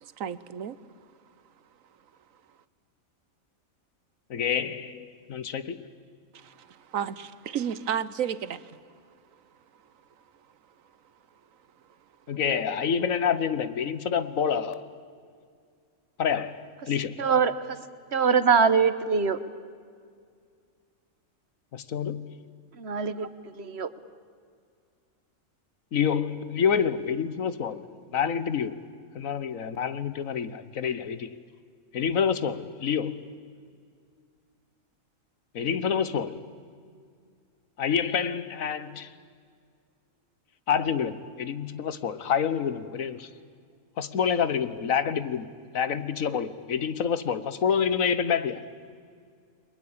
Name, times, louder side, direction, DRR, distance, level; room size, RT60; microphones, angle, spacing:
voice 1, 0.0-0.8 6.3-8.6, right 8 dB, 75° right, 1.3 m, -32 dB
voice 2, 4.3-5.9 12.3-14.9 16.2-17.2 21.7-22.4 25.9-28.8 29.1-31.3 31.9-33.2 35.5-36.4 37.8-39.1 40.7-43.3 44.0-48.6, left 7 dB, 80° left, 1.5 m, -28 dB
voice 3, 17.2-17.8 18.1-19.4 22.8-23.3 23.7-23.9, right 6 dB, 55° right, 1.4 m, -23 dB
29.5 x 22.5 x 8.8 m
omnidirectional pair, 1.4 m